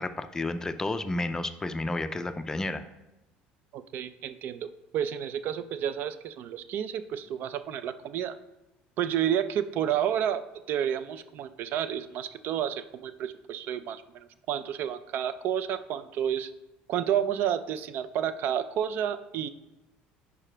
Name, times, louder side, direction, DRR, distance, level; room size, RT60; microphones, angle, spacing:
voice 1, 0.0-2.8, left 2 dB, 15° left, 10 dB, 0.4 m, -31 dB
voice 2, 3.7-8.3 9.0-10.4 10.7-16.5 16.9-19.5, right 9 dB, 60° right, 12 dB, 0.4 m, -30 dB
9.7 x 4.8 x 3.3 m, 0.99 s
cardioid pair, 115°, 4 cm